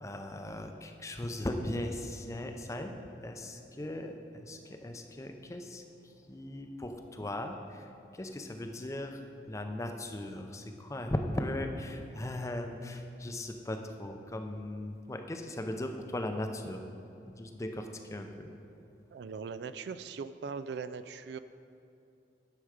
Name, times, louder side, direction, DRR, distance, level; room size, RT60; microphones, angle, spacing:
voice 1, 0.0-16.8 17.3-18.5, left 1 dB, 15° left, 5 dB, 0.5 m, -38 dB
voice 2, 19.1-21.4, right 5 dB, 65° right, 12 dB, 0.3 m, -40 dB
9.9 x 7.0 x 4.9 m, 2.7 s
head